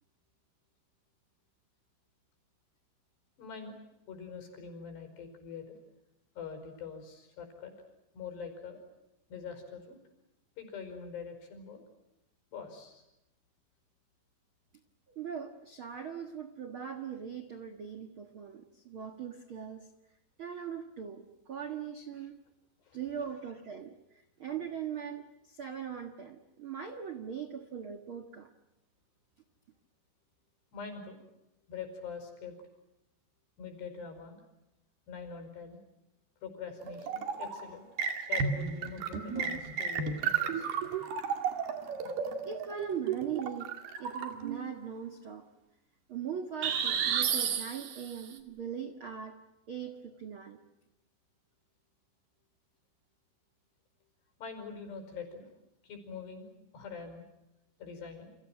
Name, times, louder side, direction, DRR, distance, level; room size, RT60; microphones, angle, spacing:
voice 1, 3.4-3.7 4.1-5.8 6.4-7.7 8.1-8.8 9.3-10.0 10.6-11.9 12.5-13.0 22.8-23.0 30.7-31.2 31.7-32.6 33.6-34.4 35.1-35.8 36.4-37.9 38.2-40.7 54.4-55.5 55.8-57.2 57.8-58.4, left 6 dB, 70° left, 7 dB, 7.1 m, -44 dB
voice 2, 15.1-19.9 20.4-22.4 22.9-28.5 42.4-43.7 44.0-45.5 46.1-49.4 49.7-50.6, right 8 dB, 90° right, 7 dB, 1.1 m, -40 dB
sound 1, 36.8-37.6 38.0-44.6 46.6-48.2, right 7 dB, 65° right, 4.0 m, -33 dB
29.5 x 27.5 x 6.2 m, 0.91 s
omnidirectional pair, 5.0 m